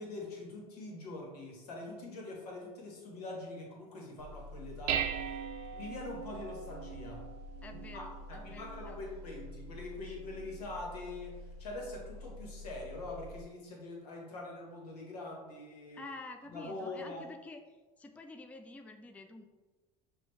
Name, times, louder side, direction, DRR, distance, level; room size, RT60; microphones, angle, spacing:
voice 1, 0.0-5.4 5.7-7.3 7.7-16.0 16.5-17.2, left 2 dB, 85° left, -1 dB, 1.3 m, -44 dB
Dishes pots and pans, 4.2-13.4, right 5 dB, 85° right, 0.5 m, -42 dB
voice 2, 7.6-9.0 15.9-17.6 18.0-19.4, left 2 dB, 5° left, 5 dB, 0.4 m, -48 dB
6.0 x 2.6 x 3.3 m, 1.2 s
hypercardioid pair, 85°, 19 cm